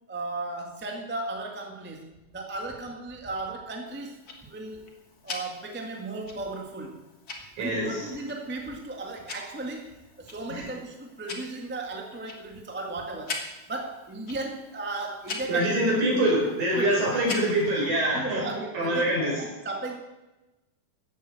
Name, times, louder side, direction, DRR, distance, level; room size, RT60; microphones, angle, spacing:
voice 1, 0.1-4.9 5.2-7.0 7.6-13.4 13.7-15.8 16.8-16.9 18.1-20.0, right 2 dB, 15° right, 2 dB, 0.3 m, -36 dB
Tick-tock, 3.9-17.9, left 3 dB, 35° left, 1.7 m, -43 dB
voice 2, 7.6-8.1 10.5-10.7 15.5-18.5 18.7-19.4, right 1 dB, 60° right, -2 dB, 6.0 m, -25 dB
14.0 x 8.6 x 7.6 m, 1.0 s
omnidirectional pair, 3.8 m